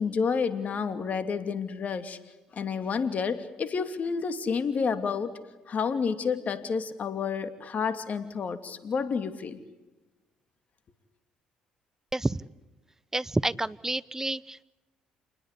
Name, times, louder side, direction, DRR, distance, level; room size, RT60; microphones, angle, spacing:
voice 1, 0.0-2.2 2.5-5.4 5.7-9.6, left 5 dB, 50° left, 10 dB, 2.9 m, -30 dB
voice 2, 13.1-14.6, right 2 dB, 15° right, 19 dB, 0.9 m, -29 dB
28.5 x 21.0 x 8.4 m, 1.1 s
hypercardioid pair, 60°, 3 cm